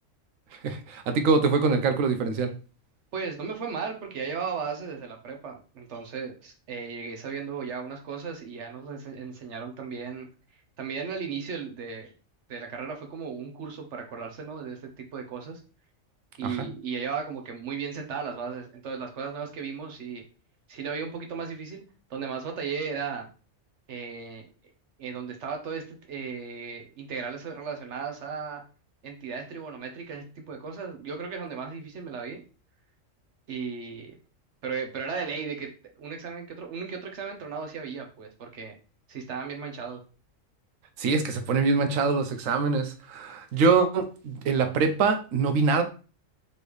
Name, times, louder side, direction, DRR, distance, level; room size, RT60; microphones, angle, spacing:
voice 1, 0.6-2.5 16.4-16.7 41.0-45.8, right 4 dB, 90° right, 7 dB, 1.1 m, -24 dB
voice 2, 3.1-10.3 10.8-12.1 12.5-15.6 16.4-20.2 20.7-21.8 22.1-23.3 23.9-24.4 25.0-28.6 29.0-32.4 33.5-34.2 34.6-35.7 36.0-38.7 39.1-40.0, right 5 dB, 65° right, 4 dB, 1.2 m, -35 dB
4.3 x 3.4 x 3.1 m, 0.36 s
omnidirectional pair, 1.3 m